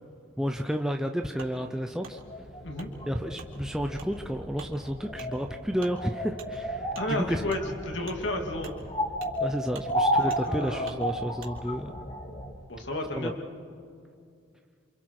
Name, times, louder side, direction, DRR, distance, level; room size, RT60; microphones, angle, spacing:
voice 1, 0.4-2.2 3.1-7.4 9.4-11.9 13.2-13.3, equal, 5° right, 4 dB, 0.6 m, -31 dB
Wood, 1.4-1.5 2.0-2.2 2.8-2.9 3.4-3.5 4.0-4.1 4.5-4.7 5.1-5.3 5.8-6.0 6.4-6.5 6.9-7.1 7.5-7.6 8.0-8.2 8.6-8.8 9.2-9.4 9.7-9.9 10.3-10.4 10.8-11.0 11.4-11.5, right 4 dB, 90° right, 3.6 m, -45 dB
sound 1, 2.1-12.5, equal, 25° left, 2.1 m, -33 dB
voice 2, 7.0-7.6 7.8-8.7 10.2-10.9 12.7-13.3, left 1 dB, 65° left, 2 dB, 2.7 m, -32 dB
28.0 x 27.5 x 4.8 m, 2.4 s
head